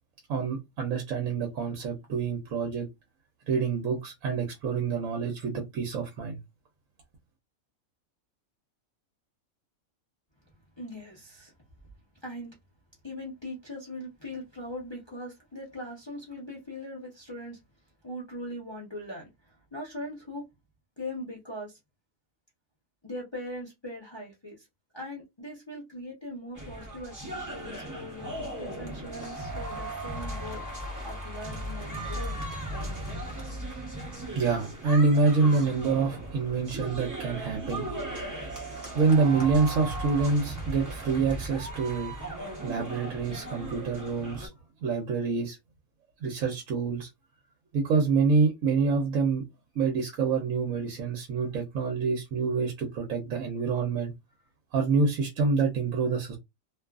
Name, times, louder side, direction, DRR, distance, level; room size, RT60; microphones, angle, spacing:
voice 1, 0.3-2.9 3.5-6.4 34.2-38.1 38.9-42.1 42.6-44.5 44.8-45.6 46.2-47.1 47.7-49.4 49.7-54.1 54.7-56.4, right 4 dB, 75° right, 1.1 m, -27 dB
voice 2, 10.7-11.5 12.1-12.6 13.0-17.6 18.0-20.5 21.0-21.8 23.0-24.7 24.9-30.7 31.0-32.4, left 1 dB, 25° left, 0.6 m, -40 dB
sound 1, 26.5-44.5, right 1 dB, 20° right, 0.5 m, -37 dB
2.6 x 2.4 x 2.3 m
omnidirectional pair, 1.4 m